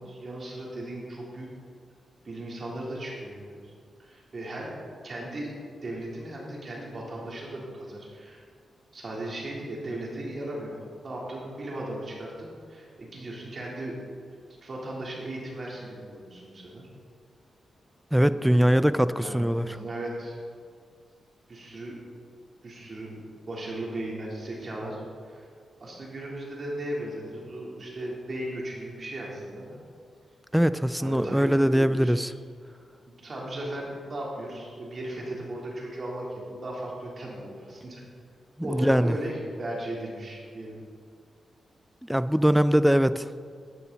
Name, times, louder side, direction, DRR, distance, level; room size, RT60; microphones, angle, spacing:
voice 1, 0.0-1.5 2.2-3.7 4.0-5.5 5.8-8.4 8.9-14.0 14.6-16.9 18.2-18.9 19.2-20.4 21.5-22.0 22.6-23.2 23.5-25.5 25.8-29.8 31.0-32.2 33.2-38.0 38.6-40.7, right 1 dB, 50° right, -3 dB, 3.4 m, -37 dB
voice 2, 18.1-19.7 30.5-32.3 38.6-39.2 42.1-43.3, equal, 5° right, 13 dB, 0.4 m, -22 dB
14.0 x 9.4 x 4.1 m, 2.1 s
cardioid pair, 70°, 0 cm